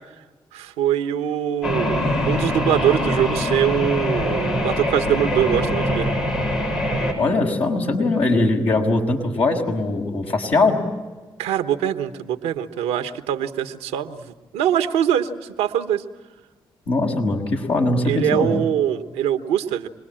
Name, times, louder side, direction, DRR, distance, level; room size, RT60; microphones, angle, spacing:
voice 1, 0.5-6.1 11.4-16.0 18.0-19.9, right 10 dB, 90° right, 7 dB, 1.1 m, -23 dB
sound 1, 1.6-7.1, left 1 dB, 90° left, 6.3 m, -23 dB
voice 2, 7.2-10.8 16.9-18.5, left 2 dB, 65° left, -1 dB, 6.1 m, -21 dB
27.0 x 21.0 x 8.9 m, 1.3 s
hypercardioid pair, 40°, 11 cm